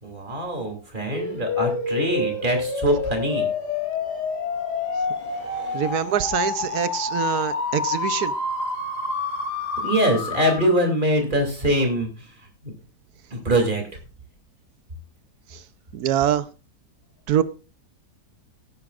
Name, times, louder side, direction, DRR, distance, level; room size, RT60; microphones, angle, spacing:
voice 1, 0.0-3.5 5.2-5.9 9.8-12.1 12.6-12.7 13.3-13.8, right 1 dB, 30° right, 3 dB, 3.0 m, -23 dB
sound 1, 1.1-11.0, left 4 dB, 80° left, 2.6 m, -28 dB
voice 2, 5.7-8.3 15.9-16.4 17.3-17.4, right 10 dB, 70° right, 14 dB, 1.2 m, -24 dB
17.5 x 9.6 x 2.5 m, 0.33 s
omnidirectional pair, 1.7 m